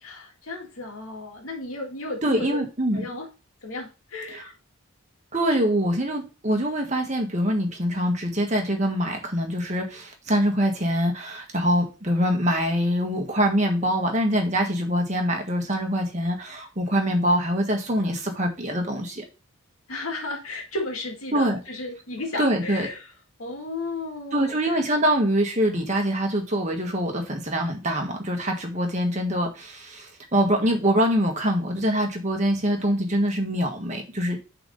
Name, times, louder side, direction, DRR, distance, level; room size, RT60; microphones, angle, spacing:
voice 1, 0.0-2.5 2.9-3.3 3.6-4.5 5.6-5.7 19.9-23.1 23.4-24.8, left 2 dB, 80° left, 2 dB, 2.1 m, -34 dB
voice 2, 2.2-3.0 4.3-4.4 5.3-19.2 21.3-21.6 22.4-22.9 24.3-34.4, equal, 35° right, 2 dB, 1.5 m, -24 dB
5.7 x 4.0 x 5.3 m, 0.30 s
head